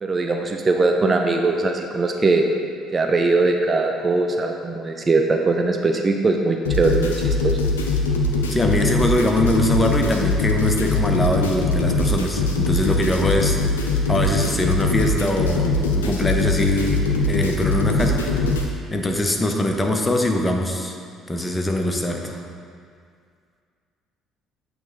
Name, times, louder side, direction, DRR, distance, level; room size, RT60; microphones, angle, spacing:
voice 1, 0.0-2.5 2.9-7.6, right 3 dB, 30° right, 3 dB, 0.4 m, -20 dB
sound 1, 6.6-18.6, left 3 dB, 80° left, 0.4 m, -22 dB
voice 2, 8.5-18.4 18.9-21.0 21.3-22.4, left 1 dB, 20° left, 3 dB, 0.7 m, -22 dB
8.1 x 3.2 x 3.7 m, 2.2 s
hypercardioid pair, 55°, 0 cm